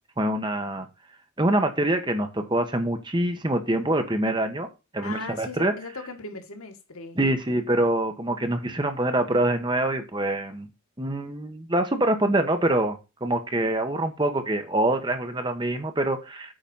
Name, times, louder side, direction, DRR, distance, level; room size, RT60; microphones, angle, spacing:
voice 1, 0.2-0.9 1.4-4.7 4.9-5.7 7.2-10.7 11.0-16.5, right 1 dB, 20° right, 1.1 m, -25 dB
voice 2, 5.0-7.2, left 3 dB, 75° left, 1.7 m, -38 dB
8.8 x 4.0 x 5.5 m
head